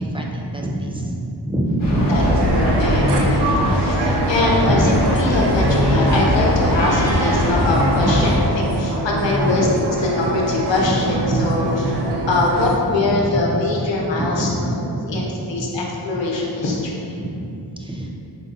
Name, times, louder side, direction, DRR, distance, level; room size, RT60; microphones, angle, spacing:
voice 1, 0.0-2.5 3.2-3.4 4.6-5.1 6.8-7.5 8.0-8.2 8.6-8.9 9.4-9.6 10.9-11.0 11.3-13.6 13.9-15.8 17.2-18.1, right 1 dB, 15° right, -1 dB, 0.3 m, -26 dB
sound 1, 1.8-8.4, equal, 50° left, 1.2 m, -21 dB
sound 2, 2.2-12.8, right 1 dB, 70° right, 0.5 m, -24 dB
voice 2, 2.5-9.7 10.0-11.6 12.3-14.7 15.1-17.1, left 2 dB, 85° left, -2 dB, 0.8 m, -22 dB
Meow, 6.6-7.5, equal, 15° left, 1.3 m, -31 dB
3.9 x 3.7 x 2.7 m, 2.8 s
wide cardioid pair, 95°, 43 cm